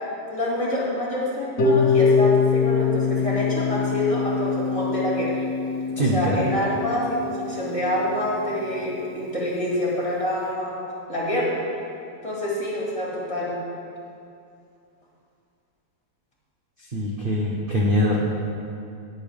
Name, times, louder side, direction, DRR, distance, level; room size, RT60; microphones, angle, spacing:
voice 1, 0.3-5.3 6.0-10.8 11.1-11.6 12.2-13.6, left 1 dB, 20° left, -6 dB, 2.2 m, -26 dB
Harp, 1.6-7.6, left 5 dB, 55° left, 1.4 m, -23 dB
voice 2, 6.0-6.4 16.9-18.2, equal, 40° right, -3 dB, 0.9 m, -23 dB
19.0 x 6.6 x 3.5 m, 2.5 s
omnidirectional pair, 1.8 m